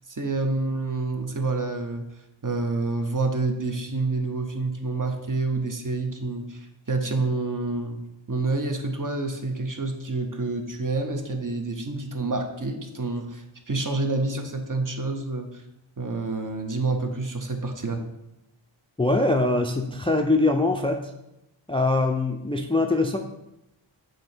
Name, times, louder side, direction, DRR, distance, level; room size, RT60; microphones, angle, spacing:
voice 1, 0.1-2.1 2.4-8.0 8.3-15.6 16.0-18.0, right 3 dB, 40° right, 4 dB, 0.8 m, -28 dB
voice 2, 19.0-21.1 21.7-23.2, left 2 dB, 10° left, 4 dB, 0.4 m, -23 dB
7.6 x 2.8 x 4.5 m, 0.89 s
wide cardioid pair, 45°, 49 cm